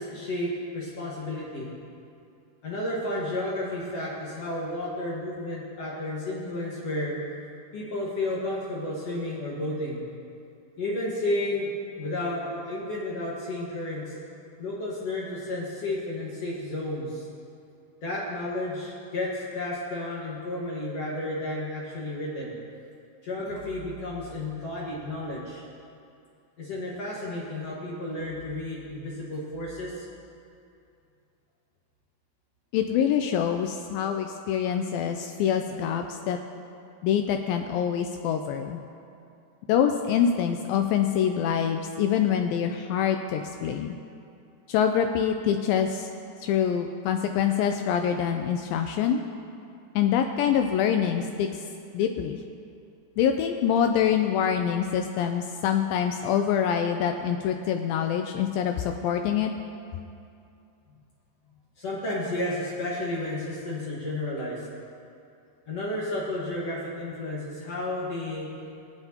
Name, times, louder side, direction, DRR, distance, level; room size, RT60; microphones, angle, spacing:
voice 1, 0.0-1.7 2.6-7.2 7.7-10.0 10.8-14.2 14.6-17.3 18.0-22.5 23.2-25.6 26.6-30.1 61.8-64.7 65.7-68.5, left 1 dB, 55° left, -6 dB, 2.0 m, -32 dB
voice 2, 32.7-36.4 37.0-38.8 39.7-44.0 44.7-46.1 46.4-49.2 50.0-51.6 51.9-52.4 53.2-59.5, left 8 dB, 85° left, 5 dB, 2.1 m, -25 dB
23.5 x 7.9 x 2.8 m, 2.6 s
omnidirectional pair, 4.5 m